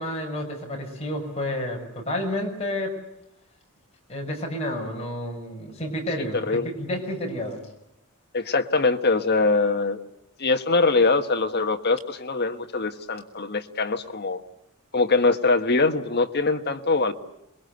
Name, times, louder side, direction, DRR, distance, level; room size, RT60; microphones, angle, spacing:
voice 1, 0.0-3.0 4.1-7.6, left 1 dB, 30° left, 0 dB, 6.4 m, -30 dB
voice 2, 6.3-6.7 8.3-10.0 10.4-14.4 14.9-17.1, left 3 dB, 45° left, 6 dB, 1.5 m, -23 dB
27.5 x 22.0 x 8.1 m, 0.86 s
head